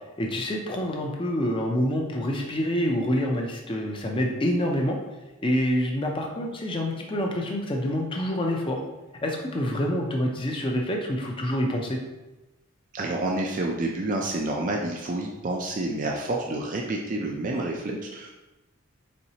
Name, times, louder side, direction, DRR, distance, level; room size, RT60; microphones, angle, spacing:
voice 1, 0.2-5.0 5.4-8.8 9.2-12.0, equal, 25° left, 1 dB, 0.5 m, -27 dB
voice 2, 12.9-18.3, right 2 dB, 35° right, 0 dB, 0.4 m, -29 dB
4.3 x 3.9 x 2.8 m, 1.1 s
head